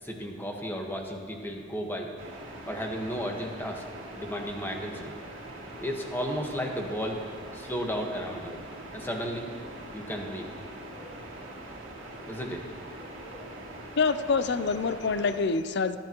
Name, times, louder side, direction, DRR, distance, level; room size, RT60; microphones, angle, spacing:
voice 1, 0.0-2.1 2.6-3.8 4.1-5.2 5.5-5.6 5.8-8.6 8.9-10.5 10.8-11.1 11.4-11.5 12.0-12.6 13.0-13.9, equal, 10° left, 1 dB, 1.4 m, -35 dB
sound 1, 2.2-15.4, right 1 dB, 70° right, 2.3 m, -43 dB
voice 2, 14.0-16.0, left 4 dB, 60° left, 12 dB, 0.6 m, -26 dB
27.0 x 9.0 x 3.0 m, 2.1 s
head